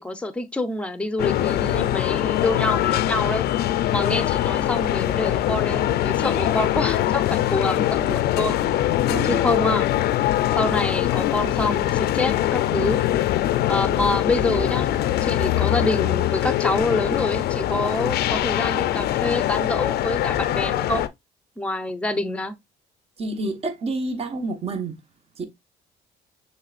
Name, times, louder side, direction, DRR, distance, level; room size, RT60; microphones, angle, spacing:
voice 1, 0.0-3.4 3.9-8.6 9.2-9.9 10.6-13.0 13.7-14.9 15.2-21.0 21.6-22.6, left 2 dB, 5° left, 0.7 m, -26 dB
sound 1, 1.2-21.1, left 13 dB, 70° left, 0.5 m, -22 dB
voice 2, 9.1-9.4 23.2-24.9 25.4-25.5, right 2 dB, 35° right, 1.0 m, -28 dB
6.4 x 3.3 x 2.4 m
cardioid pair, 110°, 17 cm